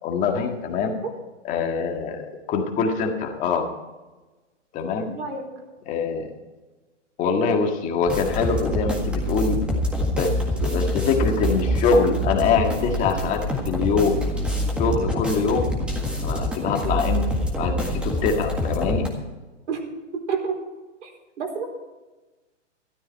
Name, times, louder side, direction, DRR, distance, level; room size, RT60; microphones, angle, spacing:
voice 1, 0.0-0.9 1.5-3.7 4.7-5.1 5.9-6.3 7.2-9.6 10.1-10.3 10.6-13.4 13.7-14.2 14.8-15.7 16.2-17.2 17.6-19.1, left 5 dB, 20° left, 3 dB, 1.8 m, -23 dB
voice 2, 5.1-5.5 19.7-19.8 20.1-20.6 21.0-21.1 21.4-21.6, right 6 dB, 70° right, 0 dB, 4.5 m, -28 dB
sound 1, 8.1-19.1, left 1 dB, 5° right, 1.7 m, -26 dB
13.0 x 12.5 x 4.6 m, 1.2 s
hypercardioid pair, 150°, 37 cm